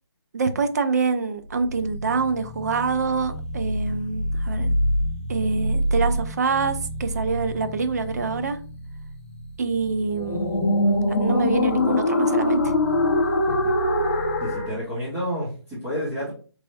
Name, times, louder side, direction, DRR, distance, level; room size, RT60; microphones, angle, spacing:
voice 1, 0.3-4.7 5.3-8.6 9.6-10.5 11.2-12.7, right 4 dB, 40° right, 0.5 m, -25 dB
sound 1, 1.5-14.8, left 1 dB, 30° left, 0.7 m, -25 dB
voice 2, 14.4-16.3, equal, 10° right, 1.0 m, -29 dB
4.5 x 3.3 x 2.6 m
hypercardioid pair, 165°, 14 cm